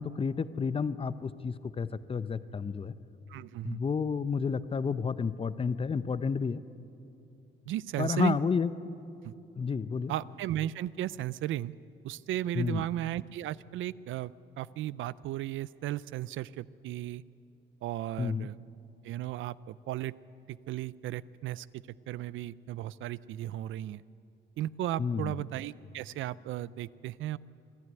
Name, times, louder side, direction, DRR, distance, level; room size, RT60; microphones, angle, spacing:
voice 1, 0.0-2.9 3.6-6.6 8.0-8.7 9.6-10.1 12.6-12.8 18.2-18.5 25.0-25.3, left 5 dB, 30° left, 14 dB, 0.7 m, -30 dB
voice 2, 3.3-3.8 7.7-8.4 9.2-9.3 10.1-11.7 12.0-17.2 17.8-18.6 19.0-20.1 20.5-24.0 24.6-27.4, right 13 dB, 80° right, 19 dB, 0.5 m, -35 dB
26.5 x 11.0 x 9.6 m, 2.7 s
cardioid pair, 90°, 20 cm